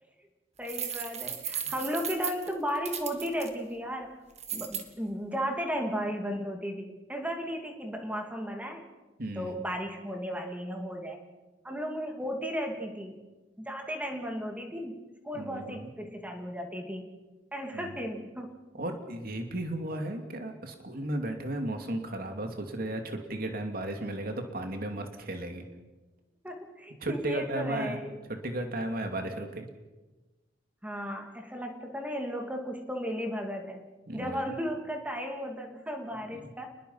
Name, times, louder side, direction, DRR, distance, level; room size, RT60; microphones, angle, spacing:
voice 1, 0.6-4.2 4.5-8.8 9.3-11.2 11.6-13.2 13.6-15.0 15.2-17.1 17.5-18.5 26.4-28.2 30.8-33.8 34.1-36.7, equal, 10° right, 3 dB, 2.6 m, -35 dB
sound 1, 0.6-3.5 4.4-4.8, right 8 dB, 35° right, 2.1 m, -35 dB
voice 2, 9.2-9.6 15.3-15.9 17.7-18.0 18.7-25.6 27.0-28.0 28.3-29.7 34.1-34.5, right 1 dB, 55° right, 4 dB, 2.7 m, -35 dB
29.0 x 21.0 x 5.8 m, 1.2 s
head